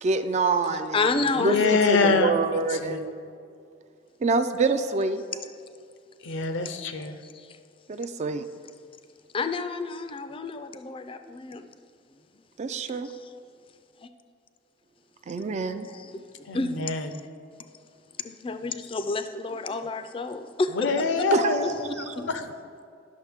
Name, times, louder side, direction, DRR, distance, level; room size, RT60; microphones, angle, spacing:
voice 1, 0.0-1.0 1.4-1.6 1.9-3.1 4.2-5.2 7.9-8.5 12.6-13.1 15.3-15.9 21.3-21.6, right 3 dB, 40° right, 10 dB, 0.3 m, -26 dB
voice 2, 0.7-2.1 4.6-5.1 5.3-5.5 6.9-7.6 8.6-8.7 9.3-11.7 13.0-13.4 15.8-16.7 17.1-17.3 18.2-22.3, left 3 dB, 30° left, 9 dB, 0.4 m, -31 dB
voice 3, 1.4-2.4 2.7-3.1 6.2-7.2 16.5-17.1 20.7-22.5, left 4 dB, 75° left, 8 dB, 0.6 m, -25 dB
10.5 x 6.4 x 3.5 m, 2.4 s
head